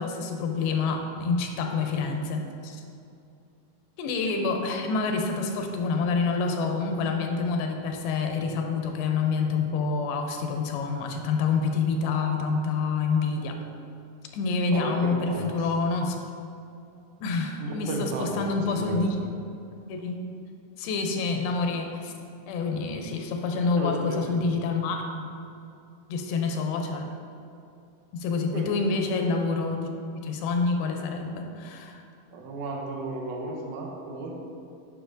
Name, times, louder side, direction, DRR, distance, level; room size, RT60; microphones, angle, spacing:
voice 1, 0.0-2.8 4.0-13.6 14.3-16.3 17.2-19.2 19.9-20.2 20.8-22.1 22.5-25.4 26.1-27.1 28.1-29.9 30.2-32.0, left 4 dB, 85° left, 3 dB, 2.5 m, -27 dB
voice 2, 14.7-15.0 15.3-15.7 17.6-18.3 18.7-19.0 23.6-23.9 24.3-24.4 28.5-28.7 32.3-34.3, right 3 dB, 85° right, -1 dB, 1.7 m, -34 dB
9.3 x 6.1 x 2.6 m, 2.5 s
omnidirectional pair, 4.4 m